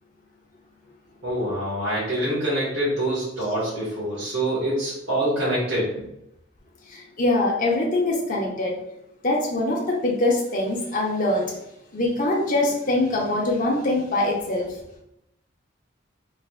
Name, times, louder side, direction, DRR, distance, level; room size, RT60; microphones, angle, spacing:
voice 1, 1.2-6.1, right 1 dB, 65° right, -9 dB, 1.4 m, -25 dB
voice 2, 6.9-8.8 9.2-11.5 11.9-14.7, left 2 dB, 45° left, -3 dB, 0.7 m, -23 dB
3.7 x 3.2 x 2.4 m, 0.83 s
head